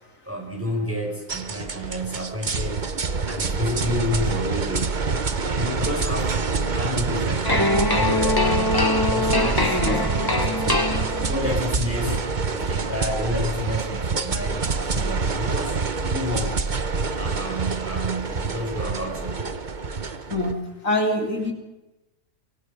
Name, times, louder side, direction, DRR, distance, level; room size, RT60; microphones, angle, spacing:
voice 1, 0.3-2.8 3.3-5.1 5.3-10.9 11.3-15.8 16.1-16.6 17.1-19.5, left 1 dB, 10° right, 0 dB, 6.4 m, -30 dB
sound 1, 1.3-20.5, right 4 dB, 35° right, 1.2 m, -26 dB
sound 2, 7.4-11.5, left 2 dB, 15° left, 1.5 m, -23 dB
voice 2, 9.7-10.1 20.3-21.5, left 1 dB, 60° left, 2 dB, 3.4 m, -25 dB
25.0 x 24.0 x 5.4 m, 0.96 s
omnidirectional pair, 1.5 m